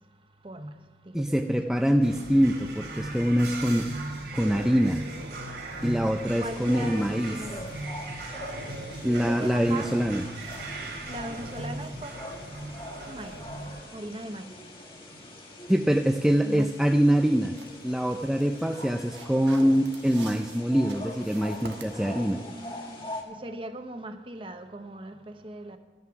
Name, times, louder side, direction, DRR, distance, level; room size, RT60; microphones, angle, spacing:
voice 1, 0.4-0.8 1.1-1.6 6.4-7.8 9.1-10.0 11.1-12.1 13.1-13.4 13.9-14.5 16.4-16.7 21.9-25.8, right 1 dB, 30° right, 8 dB, 0.8 m, -39 dB
voice 2, 1.1-3.9 4.3-5.1 5.8-7.4 9.0-10.2 15.7-17.5 17.8-22.4, equal, 5° right, 3 dB, 0.4 m, -24 dB
sound 1, 2.0-13.8, right 2 dB, 65° right, 3.0 m, -38 dB
sound 2, 6.5-23.2, left 1 dB, 25° left, 1.5 m, -43 dB
sound 3, 17.6-22.6, right 4 dB, 80° right, 1.3 m, -49 dB
13.0 x 9.6 x 5.8 m, 1.2 s
head